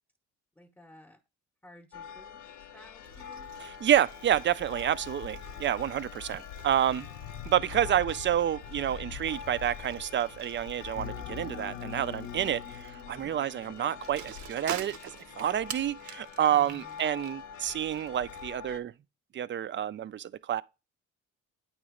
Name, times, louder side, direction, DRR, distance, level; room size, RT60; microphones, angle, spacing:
voice 1, 0.6-1.2 1.6-2.4 2.7-3.5 13.1-13.4 16.5-17.1, left 1 dB, 5° left, 0.8 m, -54 dB
sound 1, 1.9-18.8, left 8 dB, 70° left, 0.5 m, -44 dB
Bicycle, 3.0-18.5, right 9 dB, 70° right, 0.7 m, -48 dB
voice 2, 3.6-7.1 7.5-15.1 15.4-18.9 19.3-20.6, right 10 dB, 40° right, 0.4 m, -29 dB
sound 2, 11.0-14.4, left 8 dB, 40° left, 0.8 m, -43 dB
8.6 x 3.0 x 4.9 m
cardioid pair, 90°, 30 cm